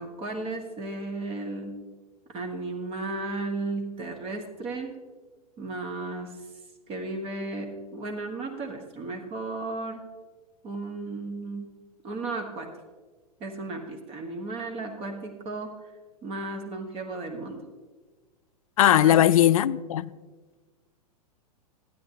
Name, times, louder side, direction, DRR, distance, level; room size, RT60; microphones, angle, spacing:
voice 1, 0.0-1.8 2.3-4.9 5.6-6.5 6.9-10.0 10.6-11.7 12.0-12.7 13.4-15.9 16.2-17.6 18.8-19.4, right 2 dB, 30° right, 1.1 m, -34 dB
voice 2, 18.8-20.1, left 11 dB, 60° left, 0.4 m, -19 dB
15.0 x 9.4 x 2.9 m
figure-of-eight pair, 100°, 20 cm